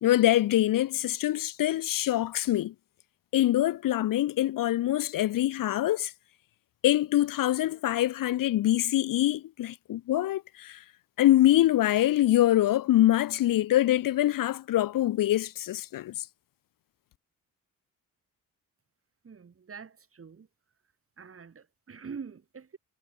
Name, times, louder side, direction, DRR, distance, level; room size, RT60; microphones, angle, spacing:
voice 1, 0.0-2.7 3.3-6.1 6.8-10.8 11.2-16.1, left 14 dB, 70° left, 1.0 m, -24 dB
voice 2, 19.2-20.5 21.2-22.8, right 6 dB, 40° right, 6.0 m, -44 dB
cardioid pair, 85°, 35 cm